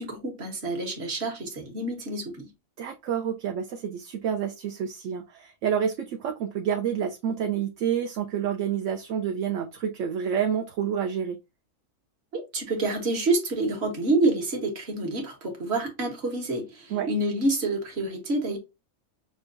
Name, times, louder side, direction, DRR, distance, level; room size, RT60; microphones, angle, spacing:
voice 1, 0.0-2.5 12.3-18.6, right 2 dB, 55° right, 1.3 m, -28 dB
voice 2, 2.8-11.4 16.9-17.1, right 8 dB, 70° right, 0.9 m, -28 dB
6.1 x 2.3 x 2.5 m
omnidirectional pair, 1.4 m